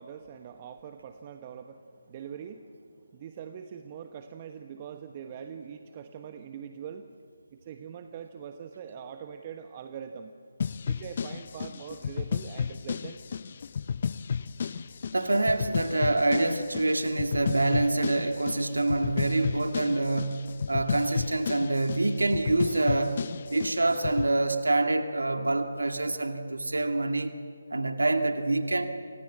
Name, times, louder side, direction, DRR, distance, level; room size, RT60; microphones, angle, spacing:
voice 1, 0.0-2.7 3.1-7.1 7.5-10.3 10.8-13.2, right 8 dB, 30° right, 7 dB, 1.2 m, -43 dB
sound 1, 10.6-24.3, left 6 dB, 45° left, 0.6 m, -33 dB
voice 2, 15.1-27.3 27.7-28.9, right 2 dB, 75° right, 6 dB, 2.2 m, -26 dB
29.0 x 25.5 x 7.6 m, 2.3 s
figure-of-eight pair, 150°, 0 cm